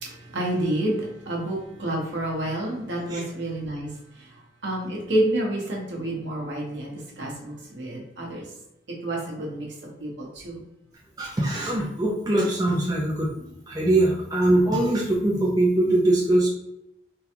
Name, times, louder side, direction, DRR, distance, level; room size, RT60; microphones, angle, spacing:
voice 1, 0.0-3.9 4.6-8.4 9.0-10.6, right 1 dB, 75° right, -3 dB, 1.1 m, -29 dB
voice 2, 11.2-16.5, right 1 dB, 20° right, -3 dB, 0.5 m, -22 dB
3.7 x 2.3 x 2.9 m, 0.82 s
head